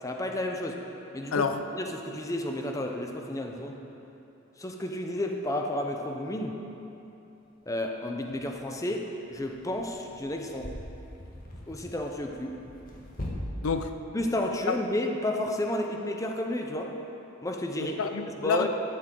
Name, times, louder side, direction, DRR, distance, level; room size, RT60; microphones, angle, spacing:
voice 1, 0.0-0.8 1.1-1.5 1.7-3.8 4.6-6.6 7.7-10.7 11.7-12.6 14.1-16.9 17.4-18.0 18.4-18.7, left 1 dB, 15° left, 2 dB, 0.6 m, -31 dB
voice 2, 1.3-1.6 13.6-14.0 14.7-14.8 17.8-18.7, left 5 dB, 85° left, 8 dB, 0.5 m, -28 dB
sound 1, 7.3-7.4 8.3-8.5 9.2-13.3, left 1 dB, 45° left, 1.3 m, -43 dB
12.0 x 7.5 x 4.6 m, 3.0 s
head